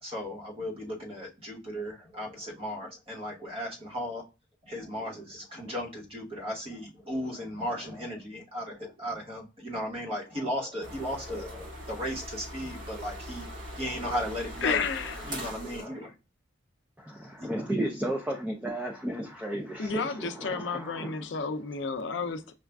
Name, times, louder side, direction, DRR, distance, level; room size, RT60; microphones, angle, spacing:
voice 1, 0.0-4.2 4.6-13.5 13.8-14.8 15.2-16.1 17.4-17.5, equal, 30° right, 1.2 m, -36 dB
sound 1, 10.8-15.8, equal, 85° right, 2.1 m, -41 dB
voice 2, 14.6-15.5 19.8-22.5, left 5 dB, 65° left, 0.5 m, -31 dB
voice 3, 17.0-21.2, right 1 dB, 5° right, 0.4 m, -33 dB
6.1 x 2.4 x 2.3 m
head